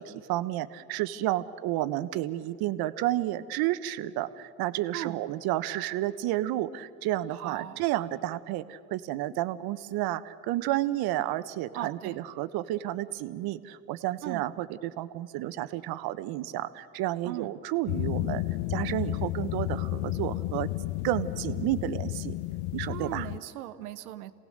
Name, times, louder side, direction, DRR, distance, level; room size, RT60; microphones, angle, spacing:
voice 1, 0.0-18.4 18.7-20.7 21.0-22.3 22.7-23.3, right 14 dB, 60° right, 13 dB, 1.1 m, -31 dB
voice 2, 7.3-7.8 11.7-12.2 14.2-14.4 17.2-17.5 22.9-24.3, right 13 dB, 80° right, 11 dB, 1.1 m, -38 dB
sound 1, 17.9-23.4, left 16 dB, 60° left, 0.7 m, -32 dB
27.5 x 18.0 x 6.6 m, 2.3 s
hypercardioid pair, 70°, 43 cm